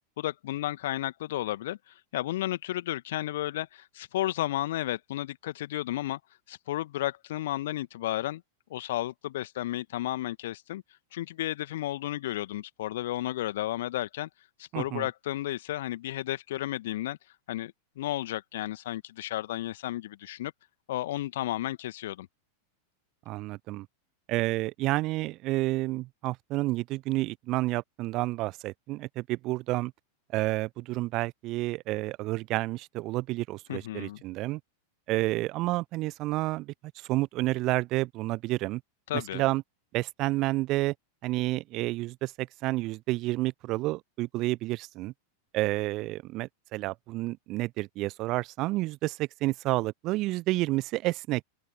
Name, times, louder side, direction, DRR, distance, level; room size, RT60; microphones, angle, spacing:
voice 1, 0.2-6.2 6.5-8.4 8.7-10.8 11.1-14.3 14.6-17.2 17.5-20.5 20.9-22.3 33.7-34.2 39.1-39.4, left 14 dB, 55° left, 2.1 m, -33 dB
voice 2, 14.7-15.1 23.3-23.9 24.3-29.9 30.3-34.6 35.1-38.8 39.1-39.6 39.9-40.9 41.2-45.1 45.5-51.4, right 19 dB, 40° right, 0.8 m, -30 dB
open air
figure-of-eight pair, 90°, 0 cm